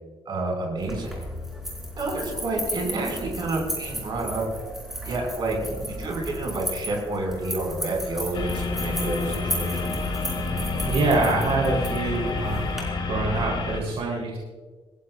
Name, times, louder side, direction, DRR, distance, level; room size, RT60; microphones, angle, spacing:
voice 1, 0.3-1.1 2.0-4.4 5.0-9.9, right 2 dB, 50° right, 0 dB, 5.7 m, -29 dB
sound 1, 0.8-12.8, equal, 5° right, 4.3 m, -34 dB
sound 2, 8.3-13.8, left 3 dB, 50° left, 3.0 m, -29 dB
voice 2, 10.9-12.7 13.0-14.4, right 3 dB, 75° right, -3 dB, 3.7 m, -25 dB
27.0 x 15.0 x 2.5 m, 1.4 s
wide cardioid pair, 180°, 10 cm